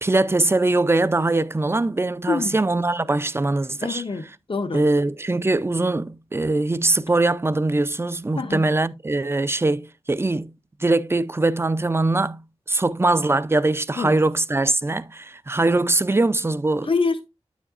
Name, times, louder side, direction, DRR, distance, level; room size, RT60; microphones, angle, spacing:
voice 1, 0.0-4.0 4.7-10.5 10.8-12.4 12.7-16.9, right 2 dB, 25° right, 0.4 m, -22 dB
voice 2, 2.3-2.6 3.8-4.8 8.4-8.7 14.0-14.2 16.8-17.3, left 4 dB, 55° left, 0.6 m, -25 dB
8.7 x 7.2 x 2.5 m
wide cardioid pair, 55°, 11 cm